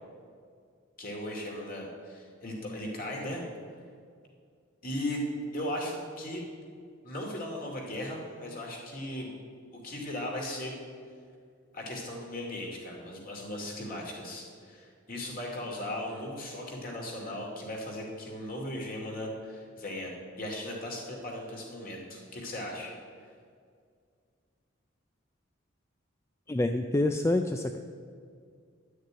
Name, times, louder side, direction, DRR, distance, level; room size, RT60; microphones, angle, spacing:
voice 1, 1.0-3.4 4.8-5.2 5.5-6.4 7.0-9.3 9.7-10.7 11.7-22.9, left 1 dB, 45° left, -1 dB, 2.5 m, -37 dB
voice 2, 26.5-27.8, left 1 dB, 15° left, 6 dB, 0.3 m, -27 dB
10.5 x 6.6 x 8.9 m, 2.2 s
head